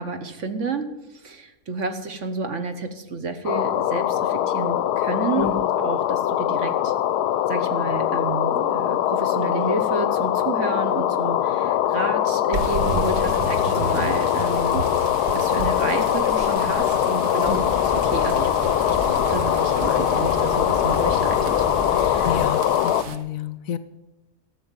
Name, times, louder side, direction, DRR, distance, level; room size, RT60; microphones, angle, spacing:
voice 1, 0.0-6.9 7.5-14.9 15.3-21.6 21.9-22.4, right 4 dB, 50° right, 7 dB, 1.3 m, -30 dB
sound 1, 3.5-23.0, left 11 dB, 85° left, 1.2 m, -22 dB
voice 2, 5.4-5.7 17.5-17.7 22.2-23.8, left 8 dB, 70° left, 13 dB, 0.9 m, -29 dB
sound 2, 12.5-23.2, right 4 dB, 75° right, 1.6 m, -33 dB
sound 3, 17.4-22.5, equal, 20° right, 1.8 m, -32 dB
13.0 x 6.9 x 9.0 m, 0.98 s
omnidirectional pair, 1.7 m